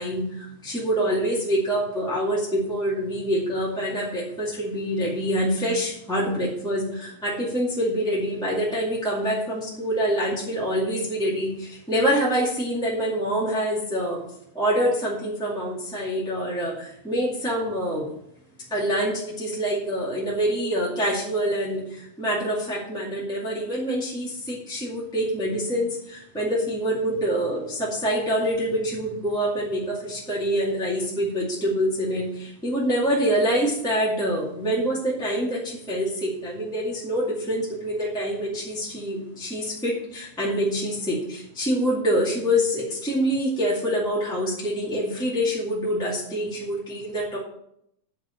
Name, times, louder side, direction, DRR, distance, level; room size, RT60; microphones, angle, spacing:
voice 1, 0.0-14.2 14.5-18.1 18.7-47.4, equal, ahead, -6 dB, 1.3 m, -26 dB
10.0 x 4.7 x 7.2 m, 0.75 s
omnidirectional pair, 4.1 m